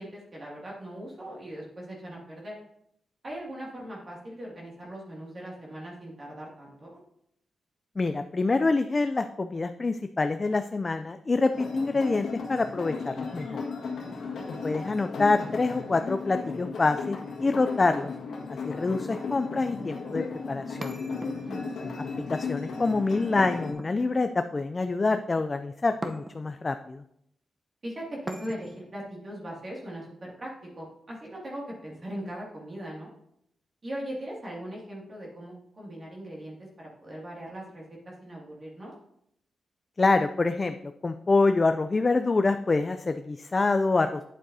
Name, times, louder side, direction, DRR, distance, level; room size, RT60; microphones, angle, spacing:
voice 1, 0.0-2.5 3.2-6.9 14.0-14.5 21.4-21.7 27.8-33.1 33.8-38.9, right 1 dB, 40° right, -4 dB, 2.3 m, -40 dB
voice 2, 8.0-13.6 14.6-18.1 18.6-21.0 22.3-27.0 40.0-44.2, left 3 dB, 30° left, 8 dB, 0.4 m, -26 dB
sound 1, 11.5-23.7, left 4 dB, 85° left, 1.7 m, -35 dB
sound 2, 20.8-21.8 23.4-24.4 26.0-26.6 28.3-28.9, right 1 dB, 25° right, 0.8 m, -40 dB
8.9 x 7.5 x 2.7 m, 0.75 s
cardioid pair, 90°, 0 cm